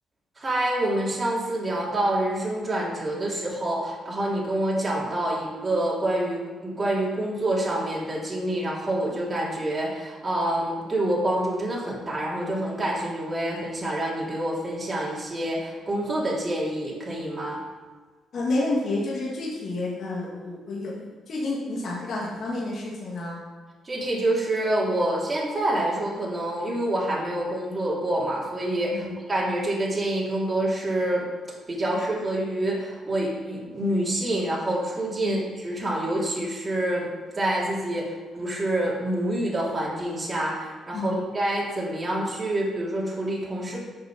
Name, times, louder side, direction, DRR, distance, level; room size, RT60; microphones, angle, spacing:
voice 1, 0.4-17.6 23.8-31.3 31.7-43.8, right 1 dB, 25° right, -5 dB, 2.8 m, -27 dB
voice 2, 18.3-20.9 21.3-23.4 28.9-29.1 35.2-35.4 40.9-41.2, left 2 dB, 55° left, -5 dB, 2.4 m, -29 dB
7.4 x 6.8 x 6.1 m, 1.4 s
cardioid pair, 90°, 0 cm